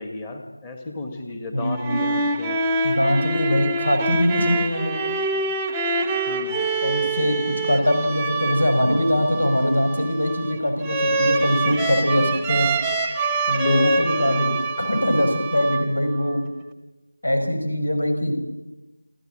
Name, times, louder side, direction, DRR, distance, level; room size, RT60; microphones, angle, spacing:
voice 1, 0.0-2.6 6.3-6.6 14.2-14.6, left 2 dB, 10° left, 4 dB, 1.8 m, -34 dB
voice 2, 1.5-2.0 2.8-5.0 6.8-12.7 13.5-16.5 17.2-18.3, equal, 75° left, 5 dB, 5.9 m, -22 dB
sound 1, 1.6-16.3, right 2 dB, 5° right, 0.6 m, -25 dB
27.5 x 14.0 x 7.7 m, 1.1 s
figure-of-eight pair, 170°, 0 cm